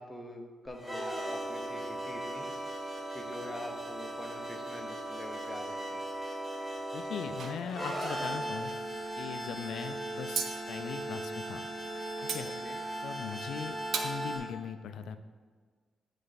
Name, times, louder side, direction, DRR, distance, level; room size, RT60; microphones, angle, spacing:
voice 1, 0.0-2.5 3.1-6.0 12.4-12.8, left 1 dB, 15° left, 3 dB, 0.8 m, -45 dB
sound 1, 0.7-14.4, right 1 dB, 5° right, 1.3 m, -38 dB
voice 2, 6.9-8.7 9.2-11.7 12.2-12.5 13.0-13.8 14.0-15.2, left 7 dB, 75° left, 10 dB, 0.4 m, -40 dB
sound 2, 7.3-8.8 10.4-10.5 12.2-12.4 13.3-13.5 13.9-14.2, right 6 dB, 65° right, 0.6 m, -37 dB
9.8 x 3.3 x 4.1 m, 1.5 s
cardioid pair, 125°, 0 cm